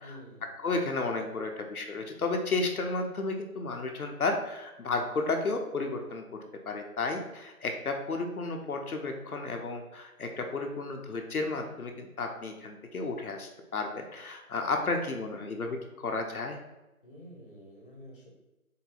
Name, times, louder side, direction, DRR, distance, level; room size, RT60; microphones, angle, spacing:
voice 1, 0.0-0.5 17.0-18.3, equal, 35° left, -2 dB, 1.0 m, -49 dB
voice 2, 0.6-6.2 6.7-16.6, left 3 dB, 75° left, 3 dB, 0.8 m, -33 dB
3.8 x 2.8 x 3.9 m, 1.0 s
figure-of-eight pair, 165°, 44 cm